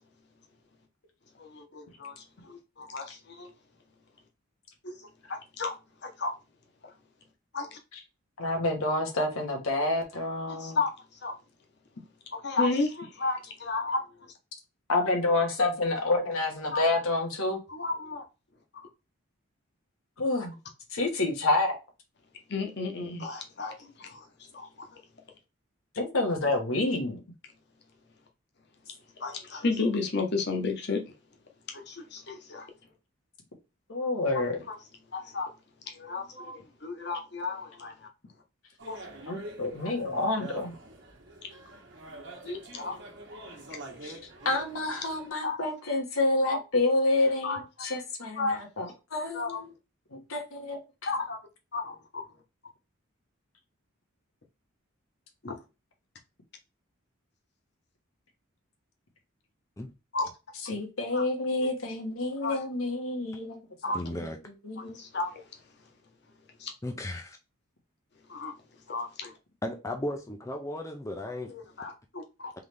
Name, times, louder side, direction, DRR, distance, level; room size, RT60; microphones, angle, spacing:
voice 1, 1.4-2.2 2.4-3.5 4.8-5.0 5.3-5.7 6.0-6.3 7.5-7.8 10.5-10.9 11.2-11.3 12.3-14.3 16.7-16.9 17.7-18.2 22.5-24.3 24.5-24.9 29.2-31.0 31.7-32.7 34.3-34.8 35.1-35.5 35.9-38.1 38.9-39.0 42.4-43.0 45.4-45.6 47.4-47.9 48.4-48.9 49.3-49.6 51.1-51.4 51.7-52.2 55.4-55.6 60.1-60.3 61.1-61.2 62.4-62.6 63.8-64.0 64.8-65.4 66.6-66.7 68.3-68.5 68.9-69.3 71.5-72.5, left 3 dB, 50° left, 0.9 m, -33 dB
voice 2, 8.4-10.8 14.9-17.6 20.2-20.6 20.9-21.8 25.9-27.2 33.9-34.6 39.3-40.7 44.0-44.2 44.4-49.7 50.1-50.8 60.7-63.6 64.1-64.2 64.6-65.0, left 2 dB, 85° left, 1.3 m, -28 dB
sound 1, 38.8-45.3, right 2 dB, 55° right, 1.1 m, -46 dB
voice 3, 63.9-64.4 66.8-67.4 69.6-71.5, left 1 dB, 15° left, 0.4 m, -35 dB
3.7 x 3.2 x 3.3 m
head